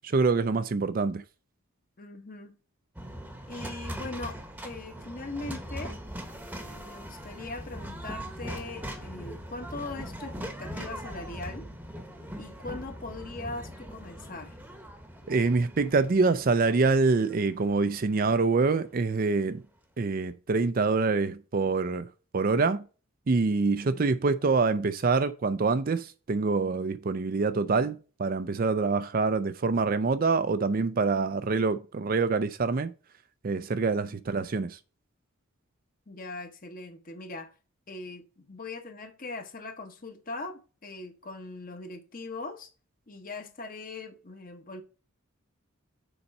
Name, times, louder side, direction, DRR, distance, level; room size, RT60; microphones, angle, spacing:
voice 1, 0.0-1.2 15.3-19.6 20.0-22.1 22.3-22.8 23.3-32.9 33.4-34.8, right 4 dB, 40° right, 0.4 m, -25 dB
voice 2, 2.0-2.6 3.5-4.4 4.6-6.0 6.6-11.7 12.4-14.6 23.7-24.2 36.1-37.5 37.9-42.7 43.1-44.8, left 3 dB, 40° left, 1.0 m, -40 dB
sound 1, 2.9-19.2, equal, 5° right, 1.0 m, -41 dB
7.0 x 4.2 x 5.3 m
head